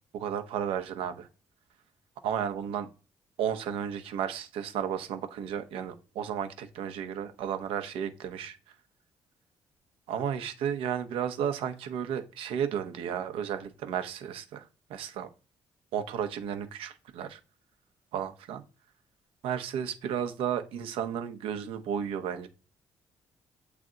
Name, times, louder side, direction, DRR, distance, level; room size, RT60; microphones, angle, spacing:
voice 1, 0.1-1.3 2.2-2.9 3.4-8.7 10.1-15.3 15.9-17.4 18.1-18.6 19.4-22.5, right 8 dB, 90° right, 9 dB, 0.8 m, -33 dB
7.5 x 3.3 x 3.8 m, 0.35 s
cardioid pair, 95°, 9 cm